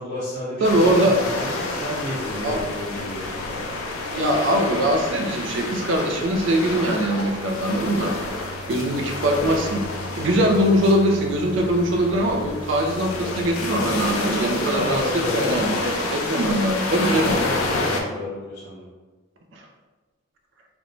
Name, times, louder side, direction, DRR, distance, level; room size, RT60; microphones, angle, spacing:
voice 1, 0.0-3.3 14.1-15.7 17.2-18.8, left 1 dB, 35° left, -13 dB, 0.8 m, -30 dB
sound 1, 0.6-18.0, left 2 dB, 85° left, 0.4 m, -29 dB
voice 2, 0.6-1.2 2.4-2.6 4.1-8.1 8.7-9.8 10.2-17.4 19.6-19.7, right 1 dB, 60° right, 2 dB, 0.3 m, -22 dB
2.5 x 2.1 x 2.9 m, 1.3 s
head